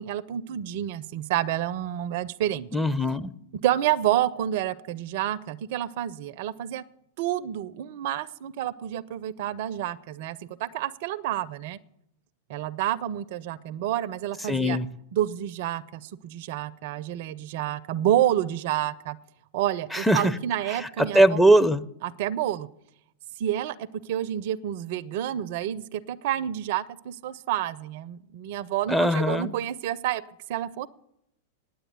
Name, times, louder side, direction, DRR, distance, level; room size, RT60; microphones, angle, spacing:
voice 1, 0.0-2.7 3.6-6.8 7.2-11.8 12.5-14.8 15.1-19.2 19.5-21.4 22.0-22.7 23.4-30.2 30.5-30.9, right 12 dB, 55° right, 19 dB, 0.4 m, -29 dB
voice 2, 2.7-3.3 14.5-14.9 19.9-20.3 21.0-21.8 28.9-29.5, right 1 dB, 5° left, 10 dB, 0.5 m, -20 dB
10.0 x 7.9 x 8.0 m, 0.78 s
figure-of-eight pair, 95°, 0 cm